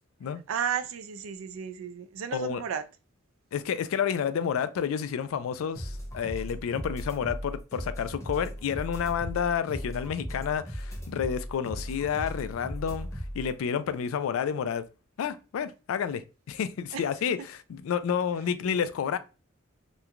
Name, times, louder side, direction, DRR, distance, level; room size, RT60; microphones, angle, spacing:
voice 1, 0.5-2.8 16.9-17.0, right 7 dB, 85° right, 0.4 m, -33 dB
voice 2, 2.3-2.6 3.5-13.1 13.3-14.9 15.2-19.2, left 7 dB, 80° left, 0.3 m, -30 dB
sound 1, 5.7-13.5, equal, 15° left, 0.7 m, -37 dB
3.0 x 2.2 x 2.4 m
head